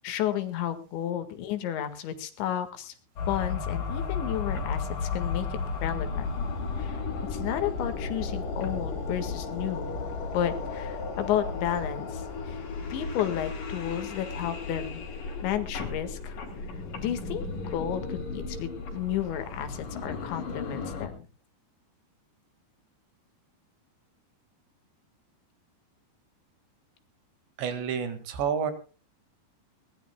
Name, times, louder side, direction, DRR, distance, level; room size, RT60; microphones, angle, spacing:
voice 1, 0.0-2.9 3.3-6.3 6.8-7.0 7.3-9.9 10.3-12.6 12.9-15.0 15.4-16.4 17.0-17.5 17.7-21.3, left 10 dB, 80° left, 9 dB, 4.1 m, -32 dB
sound 1, 3.2-21.1, left 4 dB, 50° left, 4.2 m, -34 dB
voice 2, 27.6-28.7, right 7 dB, 75° right, 10 dB, 4.2 m, -29 dB
21.0 x 19.5 x 2.3 m, 0.35 s
omnidirectional pair, 5.2 m